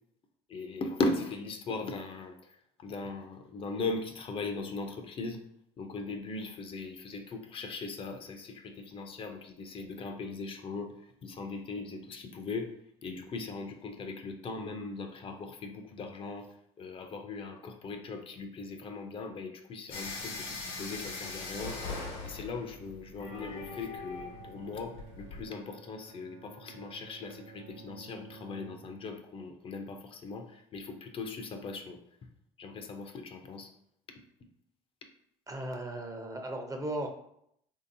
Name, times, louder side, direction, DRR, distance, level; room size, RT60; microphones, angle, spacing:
voice 1, 0.5-5.4 5.8-12.7 13.0-32.0 32.6-33.7, left 3 dB, 40° left, 5 dB, 0.6 m, -39 dB
sound 1, 19.9-25.4, left 3 dB, 80° left, 1.0 m, -41 dB
Bowed string instrument, 23.8-29.2, right 6 dB, 90° right, 0.4 m, -53 dB
voice 2, 35.5-37.1, right 1 dB, 25° right, 4 dB, 0.7 m, -36 dB
3.2 x 2.8 x 2.6 m, 0.72 s
supercardioid pair, 75°, 14 cm